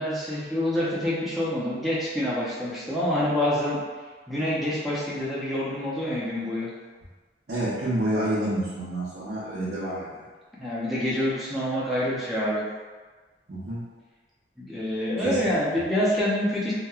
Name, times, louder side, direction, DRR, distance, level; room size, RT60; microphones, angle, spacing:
voice 1, 0.0-3.8 4.3-6.7 10.6-12.6 14.6-16.7, left 1 dB, ahead, -8 dB, 0.5 m, -26 dB
voice 2, 7.5-10.2 13.5-13.8 15.2-15.4, right 1 dB, 65° right, -11 dB, 0.7 m, -28 dB
2.9 x 2.1 x 2.3 m, 1.4 s
head